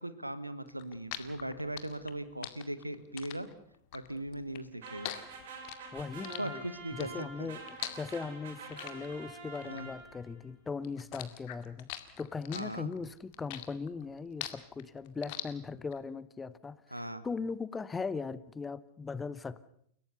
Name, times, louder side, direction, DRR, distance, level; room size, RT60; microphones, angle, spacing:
voice 1, 0.0-3.5 3.9-5.1 6.4-7.5 9.6-9.9 12.5-12.9 16.9-17.2, right 1 dB, 85° right, 14 dB, 1.5 m, -39 dB
sound 1, 0.7-10.5 10.8-16.0, left 15 dB, 45° left, 2.1 m, -43 dB
sound 2, 4.8-10.3, right 3 dB, 55° right, 6.2 m, -46 dB
voice 2, 5.9-6.6 6.9-11.9 12.2-19.7, left 4 dB, 15° left, 17 dB, 1.0 m, -39 dB
30.0 x 17.5 x 6.8 m, 0.67 s
figure-of-eight pair, 90°, 0 cm